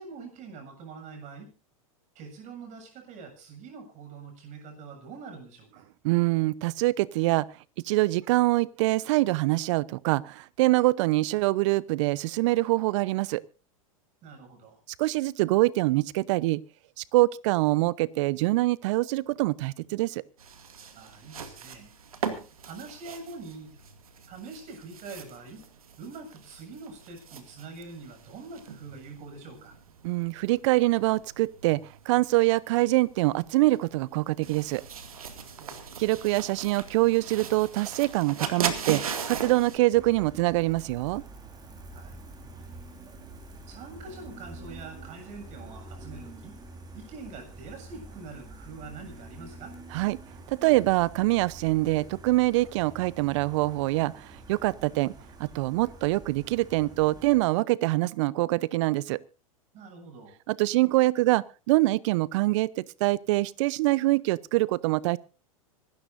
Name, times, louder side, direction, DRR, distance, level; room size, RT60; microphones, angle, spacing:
voice 1, 0.0-1.5 2.2-5.9 14.2-14.8 20.9-21.9 22.6-23.8 24.3-25.7 26.0-29.8 35.6-35.9 41.9-42.2 43.7-46.6 46.9-49.7 59.7-60.4, right 4 dB, 40° right, 7.0 m, -44 dB
voice 2, 6.0-7.5 7.8-13.4 15.0-16.6 17.0-20.2 30.0-34.8 36.0-41.2 49.9-50.2 50.5-55.1 55.4-59.2 60.5-65.2, right 19 dB, 60° right, 0.8 m, -24 dB
sound 1, 20.4-39.8, right 6 dB, 85° right, 2.3 m, -39 dB
Gull seagull, 39.9-57.4, right 2 dB, 20° right, 4.0 m, -47 dB
25.5 x 13.0 x 2.6 m
hypercardioid pair, 100°, 18 cm